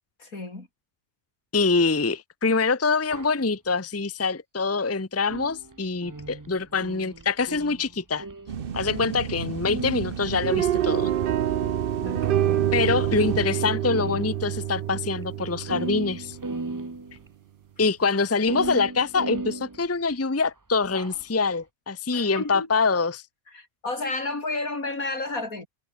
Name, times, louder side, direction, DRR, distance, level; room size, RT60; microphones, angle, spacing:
voice 1, 0.2-0.7 12.0-12.7 17.8-17.9 22.1-22.7 23.5-25.7, left 2 dB, 75° left, 5.1 m, -32 dB
voice 2, 1.5-8.2 8.7-11.1 12.7-16.4 17.8-23.2, left 4 dB, 10° left, 0.8 m, -25 dB
sound 1, 3.1-3.4 5.3-9.4 9.7-11.2 12.1-12.2 12.7-12.8 13.1-14.6 14.9-15.0 15.2-15.3 15.6-17.3 18.5-20.2 20.8-21.2, right 3 dB, 15° right, 0.8 m, -36 dB
sound 2, 8.5-13.5, right 7 dB, 45° right, 1.0 m, -33 dB
sound 3, 10.4-16.7, right 11 dB, 85° right, 0.4 m, -27 dB
omnidirectional pair, 1.5 m